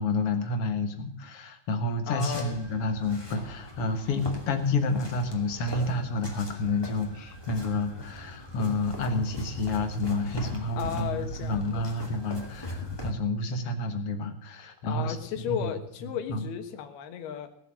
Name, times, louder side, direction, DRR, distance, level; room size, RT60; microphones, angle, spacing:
voice 1, 0.0-15.7 16.3-16.4, left 2 dB, 60° left, 7 dB, 1.6 m, -29 dB
voice 2, 2.1-2.6 10.8-11.8 14.8-17.5, left 9 dB, 80° left, 9 dB, 3.3 m, -34 dB
sound 1, 2.2-13.1, left 1 dB, 10° left, 1.8 m, -40 dB
18.5 x 7.6 x 7.4 m, 0.73 s
omnidirectional pair, 4.5 m